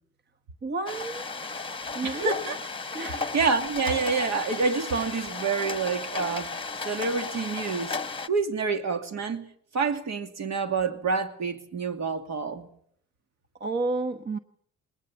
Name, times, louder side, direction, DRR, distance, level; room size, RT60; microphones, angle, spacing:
voice 1, 0.6-1.3 1.9-2.4 2.9-3.3 13.6-14.4, right 3 dB, 35° right, 1.3 m, -31 dB
sound 1, 0.9-8.3, left 4 dB, 15° left, 1.2 m, -34 dB
voice 2, 2.0-2.6 3.0-8.0 8.3-9.4 9.7-12.7, right 4 dB, 60° right, 2.7 m, -28 dB
21.0 x 20.0 x 7.2 m
cardioid pair, 90°, 30 cm